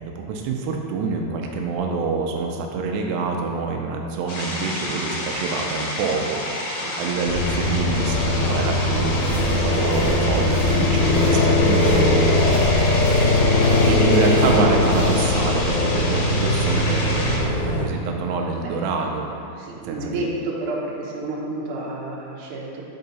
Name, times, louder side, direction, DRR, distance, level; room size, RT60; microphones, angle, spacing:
voice 1, 0.0-6.4 7.0-12.0 13.3-19.5 19.8-20.3, right 4 dB, 85° right, 2 dB, 2.7 m, -26 dB
sound 1, 4.3-17.4, left 1 dB, 65° left, 2.4 m, -29 dB
sound 2, 7.3-17.9, left 2 dB, 80° left, 2.6 m, -20 dB
sound 3, 9.2-15.2, equal, 50° right, 2.0 m, -29 dB
voice 2, 11.0-12.0 18.6-18.9 19.6-22.8, right 2 dB, 70° right, -4 dB, 2.1 m, -31 dB
6.6 x 5.4 x 4.0 m, 2.6 s
omnidirectional pair, 4.8 m